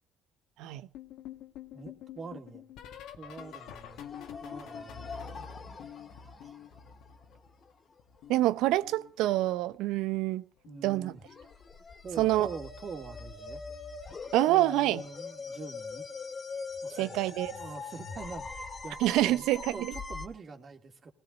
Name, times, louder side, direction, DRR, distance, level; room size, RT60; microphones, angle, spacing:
sound 1, 0.9-7.7 8.0-9.6 10.6-10.9 11.2-11.5 13.1-13.3 13.7-13.9 15.5-15.6, left 8 dB, 70° left, 1.9 m, -48 dB
voice 1, 1.7-2.6 3.2-4.0 4.4-5.1 6.4-6.6 10.6-11.2 12.0-13.6 14.5-16.1 16.8-17.2 17.5-21.1, right 4 dB, 40° right, 2.9 m, -44 dB
sound 2, 3.4-3.5 3.9-7.4 11.3-20.3, left 4 dB, 40° left, 2.7 m, -42 dB
voice 2, 8.3-10.4 10.8-11.1 12.2-12.5 14.3-15.0 17.0-17.5 19.0-19.6, right 15 dB, 70° right, 0.9 m, -26 dB
20.0 x 17.0 x 4.1 m
hypercardioid pair, 60°, 0 cm